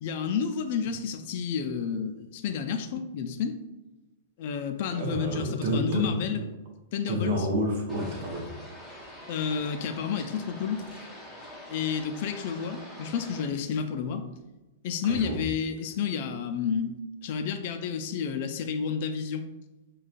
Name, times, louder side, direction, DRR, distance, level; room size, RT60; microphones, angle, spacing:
voice 1, 0.0-3.6 4.4-6.4 6.9-7.5 9.3-10.9 11.7-14.3 14.8-16.9 17.2-19.4, left 6 dB, 55° left, 7 dB, 0.3 m, -30 dB
voice 2, 4.9-6.2 7.1-9.2 15.1-15.4, equal, 55° right, 1 dB, 0.8 m, -30 dB
sound 1, 7.9-13.5, left 1 dB, 5° left, 0.7 m, -45 dB
3.7 x 2.3 x 2.5 m, 1.1 s
hypercardioid pair, 120°, 0 cm